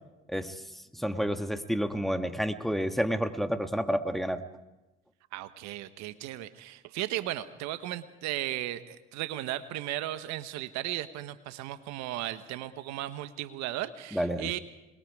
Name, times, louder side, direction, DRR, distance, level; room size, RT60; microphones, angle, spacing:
voice 1, 0.3-4.4 14.1-14.5, equal, ahead, 8 dB, 1.7 m, -30 dB
voice 2, 5.3-14.6, right 14 dB, 70° right, 12 dB, 1.2 m, -36 dB
27.0 x 21.0 x 4.8 m, 1.0 s
hypercardioid pair, 60°, 29 cm